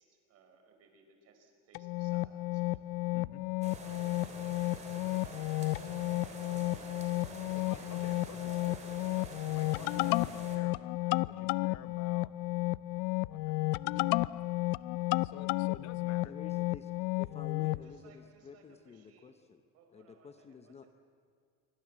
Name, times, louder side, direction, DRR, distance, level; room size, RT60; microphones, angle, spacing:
voice 1, 0.0-2.8 17.8-19.4 19.7-20.9, right 5 dB, 50° right, 4 dB, 4.9 m, -63 dB
sound 1, 1.7-17.8, left 21 dB, 90° left, 0.6 m, -33 dB
sound 2, 3.6-10.6, right 3 dB, 20° right, 3.3 m, -47 dB
voice 2, 7.5-12.3 13.3-13.5 15.1-16.4, left 12 dB, 55° left, 13 dB, 1.0 m, -51 dB
voice 3, 16.1-16.9 17.2-19.6 19.9-20.8, left 6 dB, 20° left, 9 dB, 0.8 m, -51 dB
26.5 x 24.0 x 7.6 m, 2.3 s
cardioid pair, 175°, 32 cm